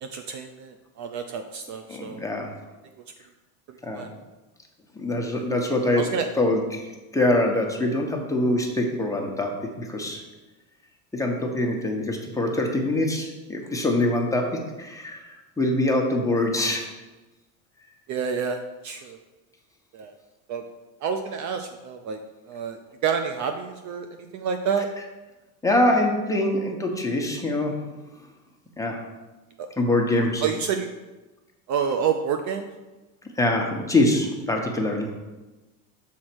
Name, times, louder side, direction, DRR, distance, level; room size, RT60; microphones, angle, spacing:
voice 1, 0.0-2.2 3.7-4.1 5.3-5.5 5.9-6.3 18.1-19.2 19.9-20.1 20.5-20.6 21.0-22.2 22.5-24.9 29.6-29.7 30.4-30.9 31.7-32.7, right 7 dB, 40° right, 6 dB, 0.6 m, -29 dB
voice 2, 1.9-2.5 3.8-4.1 4.9-6.0 6.4-6.8 7.1-10.2 11.1-15.2 15.6-16.9 25.6-27.8 28.8-29.0 29.8-30.4 33.4-35.1, left 1 dB, 5° left, 0 dB, 1.1 m, -24 dB
6.4 x 4.2 x 6.1 m, 1.1 s
supercardioid pair, 110°, 43 cm